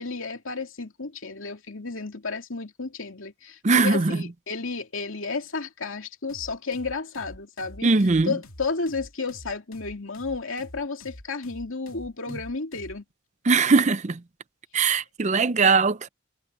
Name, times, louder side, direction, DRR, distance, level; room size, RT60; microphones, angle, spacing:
voice 1, 0.0-7.9 8.2-13.0, left 4 dB, 70° left, 2.7 m, -32 dB
voice 2, 3.6-4.1 7.8-8.3 13.5-14.2 14.7-16.1, right 4 dB, 35° right, 0.6 m, -20 dB
sound 1, 6.3-13.0, left 1 dB, 90° left, 2.6 m, -46 dB
head